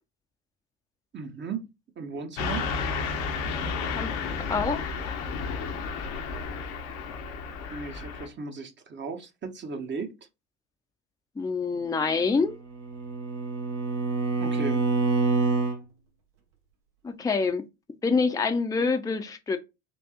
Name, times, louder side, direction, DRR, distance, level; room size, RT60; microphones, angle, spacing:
voice 1, 1.1-1.7 2.0-2.7 7.7-10.2 14.4-14.9, right 4 dB, 30° right, 0.9 m, -36 dB
Car passing by / Truck, 2.4-8.3, left 5 dB, 65° left, 0.9 m, -32 dB
voice 2, 4.5-4.9 11.4-12.6 17.0-17.6 18.0-19.6, left 4 dB, 10° left, 0.6 m, -26 dB
Bowed string instrument, 12.4-15.8, right 3 dB, 70° right, 1.2 m, -26 dB
4.3 x 2.6 x 2.9 m
hypercardioid pair, 70°, 37 cm